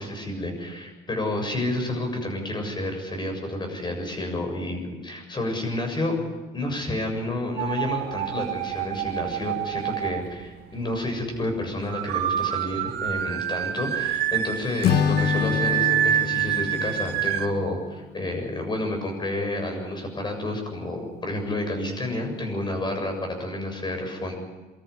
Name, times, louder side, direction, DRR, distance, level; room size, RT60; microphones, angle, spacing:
voice 1, 0.0-6.2 6.5-24.4, left 1 dB, 25° left, 4 dB, 7.3 m, -30 dB
sound 1, 7.6-10.5 11.9-17.5, right 11 dB, 80° right, 1.9 m, -27 dB
Acoustic guitar / Strum, 14.8-18.1, left 8 dB, 75° left, 1.4 m, -26 dB
25.5 x 13.5 x 9.8 m, 1.2 s
cardioid pair, 110°, 17 cm